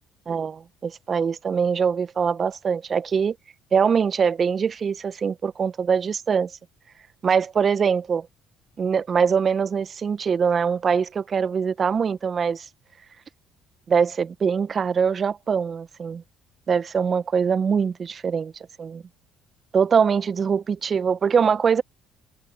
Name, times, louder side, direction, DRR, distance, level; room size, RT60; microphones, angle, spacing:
voice 1, 0.3-3.4 3.7-6.5 7.2-8.3 8.8-12.7 13.9-16.2 16.7-18.5 18.8-19.0 19.7-21.8, right 6 dB, 40° right, 1.3 m, -23 dB
hypercardioid pair, 60°, 0 cm